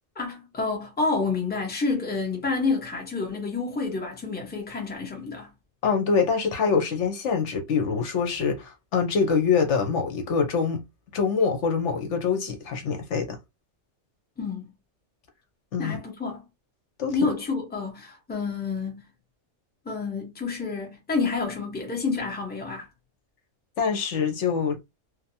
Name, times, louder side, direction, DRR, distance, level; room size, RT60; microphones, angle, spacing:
voice 1, 0.2-5.5 14.4-14.7 15.8-16.4 17.1-19.0 19.8-22.9, left 4 dB, 10° left, 0.7 m, -29 dB
voice 2, 5.8-10.8 11.1-13.4 15.7-16.0 17.0-17.2 23.8-24.8, left 5 dB, 70° left, 1.0 m, -25 dB
2.8 x 2.1 x 2.7 m
omnidirectional pair, 1.3 m